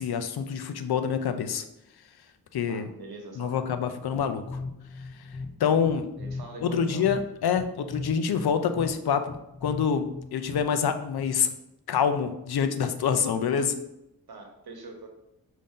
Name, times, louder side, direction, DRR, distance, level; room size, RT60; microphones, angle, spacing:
voice 1, 0.0-1.6 2.5-2.9 3.4-4.6 5.6-6.1 6.6-11.5 11.9-13.8, left 7 dB, 85° left, 8 dB, 0.5 m, -26 dB
voice 2, 2.7-3.5 6.2-7.0 14.3-15.1, right 3 dB, 85° right, 2 dB, 1.0 m, -43 dB
sound 1, 4.2-11.0, left 3 dB, 30° left, 0.5 m, -39 dB
5.2 x 2.7 x 3.6 m, 0.85 s
wide cardioid pair, 120°, 37 cm